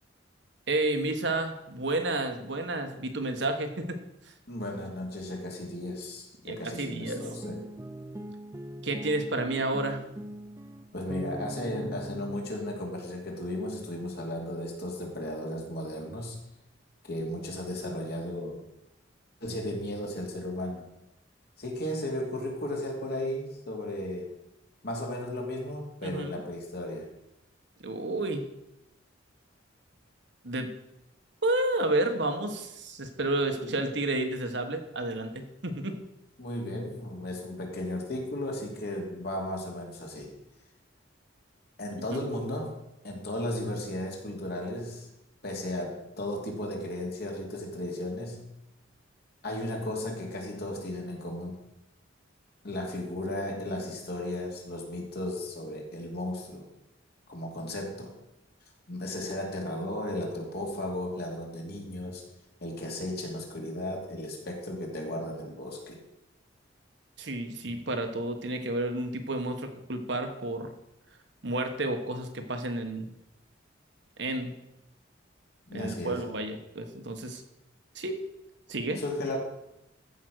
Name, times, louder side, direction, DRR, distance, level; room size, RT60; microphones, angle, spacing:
voice 1, 0.7-4.0 6.4-7.2 8.8-10.0 26.0-26.4 27.8-28.5 30.4-30.7 31.4-36.0 42.1-42.2 67.2-70.7 71.4-73.1 74.2-74.5 75.7-77.4 77.9-78.2 78.7-79.0, right 2 dB, 60° right, 6 dB, 1.3 m, -31 dB
voice 2, 4.5-7.6 10.9-16.4 17.1-18.6 19.4-20.9 21.6-24.3 24.8-27.1 33.5-33.8 36.4-40.3 41.8-42.7 43.0-45.1 45.4-48.5 49.4-51.6 52.6-56.7 57.3-58.1 58.9-62.2 62.6-66.0 75.7-76.3 79.0-79.4, left 1 dB, 55° left, 0 dB, 2.7 m, -35 dB
sound 1, 7.0-12.4, right 1 dB, 15° right, 0.5 m, -41 dB
14.0 x 5.4 x 6.3 m, 0.86 s
head